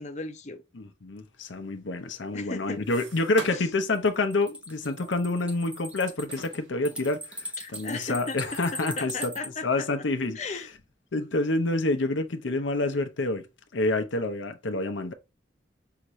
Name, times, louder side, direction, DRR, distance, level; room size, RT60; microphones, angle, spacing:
voice 1, 0.0-0.6 2.3-2.8 3.5-3.7 7.6-8.4 9.0-9.9 10.3-10.7, left 3 dB, 35° left, 0.6 m, -36 dB
voice 2, 0.8-9.3 9.6-10.4 11.1-13.5 13.7-15.1, left 2 dB, 80° left, 0.7 m, -28 dB
sound 1, 1.9-3.9 4.2-4.4 5.0-5.8 6.2-8.7 9.2-9.3 9.6-9.7 10.4-10.6 11.0-11.7 12.1-12.8, right 3 dB, 75° right, 1.1 m, -46 dB
sound 2, 3.9-9.5, right 1 dB, 5° right, 0.6 m, -39 dB
5.8 x 2.6 x 3.0 m
head